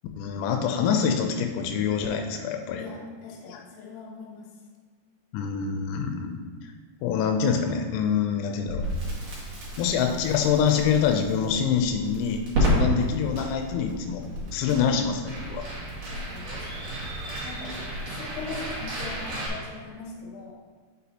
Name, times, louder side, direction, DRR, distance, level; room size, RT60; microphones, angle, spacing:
voice 1, 0.2-2.8 3.5-3.6 5.3-6.7 7.0-8.8 9.8-14.3 14.5-15.2 15.5-15.7, left 7 dB, 85° left, 4 dB, 3.3 m, -25 dB
voice 2, 2.8-4.5 14.7-15.1 15.3-17.0 17.4-20.6, left 3 dB, 65° left, -2 dB, 3.0 m, -41 dB
Crackle, 8.7-19.5, equal, 55° right, 2.7 m, -31 dB
sound 1, 13.0-18.0, right 2 dB, 85° right, 3.3 m, -44 dB
8.3 x 7.2 x 2.8 m, 1.5 s
omnidirectional pair, 6.0 m